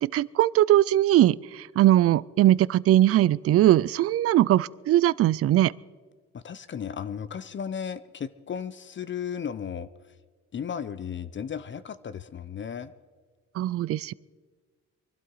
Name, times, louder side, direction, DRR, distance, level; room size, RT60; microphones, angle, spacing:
voice 1, 0.0-5.7 13.6-14.1, right 13 dB, 50° right, 21 dB, 0.4 m, -20 dB
voice 2, 6.3-9.9 10.5-12.9, left 7 dB, 40° left, 14 dB, 0.7 m, -35 dB
24.0 x 12.0 x 4.7 m, 1.5 s
cardioid pair, 90°, 30 cm